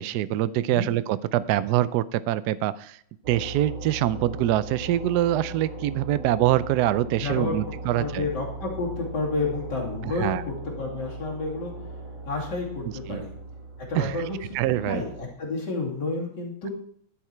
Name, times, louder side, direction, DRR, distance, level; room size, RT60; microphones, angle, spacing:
voice 1, 0.0-3.0 3.3-8.3 10.0-10.4 13.1-13.2 13.9-14.2 14.5-15.0, right 13 dB, 80° right, 15 dB, 0.9 m, -24 dB
sound 1, 3.2-15.3, right 2 dB, 60° right, 2.4 m, -38 dB
voice 2, 7.2-7.6 8.0-11.7 12.2-13.3 13.8-14.4 14.8-16.7, left 3 dB, 55° left, -3 dB, 3.2 m, -30 dB
11.5 x 6.4 x 4.4 m, 0.64 s
omnidirectional pair, 2.3 m